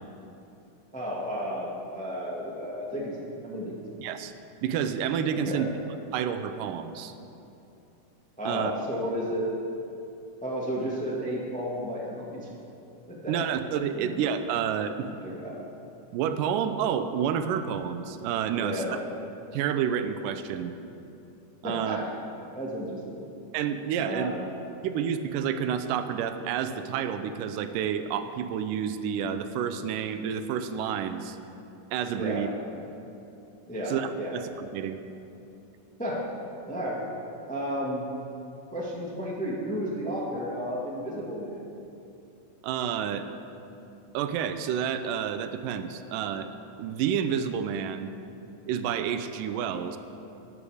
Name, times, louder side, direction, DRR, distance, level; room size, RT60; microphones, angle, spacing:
voice 1, 0.9-3.2 3.4-3.7 5.3-5.6 8.4-9.5 10.4-12.4 13.1-13.3 13.9-14.1 15.2-15.6 18.5-19.0 21.6-22.1 22.5-23.2 24.0-24.4 32.2-32.5 33.7-34.4 36.0-36.3 36.6-37.0 37.5-38.0 38.7-41.6, equal, 10° left, -4 dB, 0.3 m, -32 dB
voice 2, 4.0-4.3 4.6-5.7 6.1-7.1 8.5-8.7 13.3-15.1 16.1-19.0 19.5-20.7 21.6-22.0 23.5-24.3 24.8-31.4 31.9-32.5 32.8-32.9 33.9-35.0 42.6-43.3 44.1-46.5 46.8-48.1 48.7-50.0, right 8 dB, 85° right, 9 dB, 2.2 m, -29 dB
13.0 x 9.8 x 4.9 m, 2.8 s
omnidirectional pair, 3.8 m